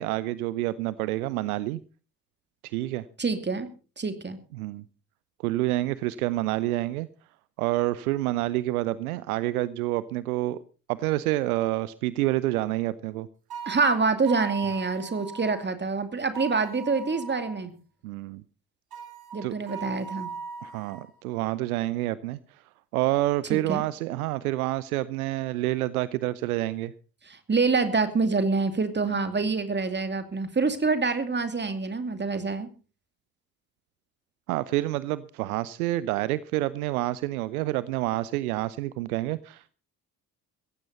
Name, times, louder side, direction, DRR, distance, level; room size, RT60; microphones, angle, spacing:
voice 1, 0.0-1.8 2.6-3.0 4.5-4.8 5.4-7.1 7.6-10.6 10.9-13.3 18.0-18.4 19.4-19.5 20.6-22.6 22.9-26.9 34.5-39.7, right 16 dB, 70° right, 18 dB, 0.7 m, -28 dB
voice 2, 3.2-3.7 4.0-4.4 13.7-17.7 19.3-20.3 23.5-23.8 27.3-32.7, right 4 dB, 25° right, 9 dB, 2.5 m, -26 dB
sound 1, 13.5-15.6 16.3-17.6 18.9-21.1, right 7 dB, 50° right, 3.7 m, -39 dB
16.5 x 15.5 x 4.1 m, 0.36 s
figure-of-eight pair, 45°, 45 cm